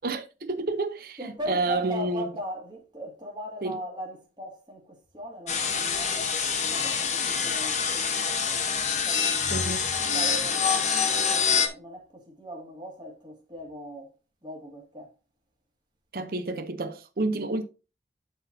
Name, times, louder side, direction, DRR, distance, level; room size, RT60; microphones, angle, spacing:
voice 1, 0.0-2.3 3.6-3.7 9.5-9.9 16.1-17.6, right 2 dB, 55° right, 0.7 m, -29 dB
voice 2, 1.2-8.7 9.0-9.8 10.1-15.1, equal, 25° right, 2.2 m, -40 dB
sound 1, 5.5-11.7, left 6 dB, 40° left, 1.1 m, -26 dB
12.0 x 4.1 x 2.7 m
head